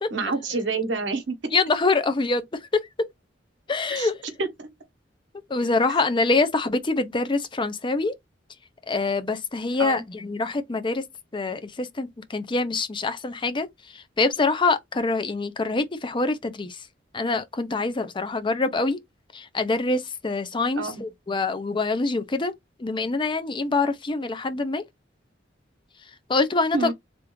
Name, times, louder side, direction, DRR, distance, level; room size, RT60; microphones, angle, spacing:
voice 1, 0.1-1.4 3.9-4.1 4.4-4.7 9.8-10.0 20.8-21.0 26.7-26.9, right 3 dB, 80° right, 1.0 m, -27 dB
voice 2, 1.5-2.4 2.7-2.8 3.7-4.2 5.5-8.1 8.9-11.0 11.3-16.9 17.1-19.0 19.3-22.5 22.8-24.8 26.3-26.9, left 3 dB, 25° left, 0.5 m, -25 dB
3.5 x 2.4 x 3.0 m
head